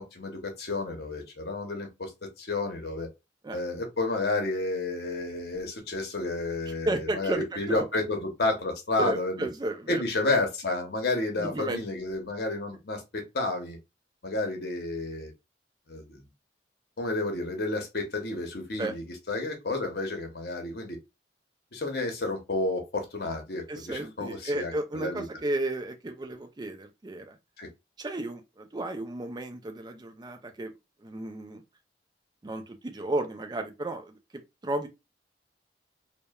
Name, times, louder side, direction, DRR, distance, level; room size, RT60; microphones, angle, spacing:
voice 1, 0.0-2.1 2.4-3.1 3.5-9.5 9.9-13.8 14.2-15.3 15.9-16.3 17.0-21.0 21.7-25.2 27.6-27.7, left 2 dB, 60° left, 0.8 m, -31 dB
voice 2, 6.9-7.8 9.0-10.0 11.4-11.8 18.8-18.9 23.7-27.4 28.0-30.7 31.0-31.6 32.4-34.2 34.6-34.9, right 2 dB, 25° right, 0.4 m, -33 dB
2.9 x 2.1 x 2.2 m
head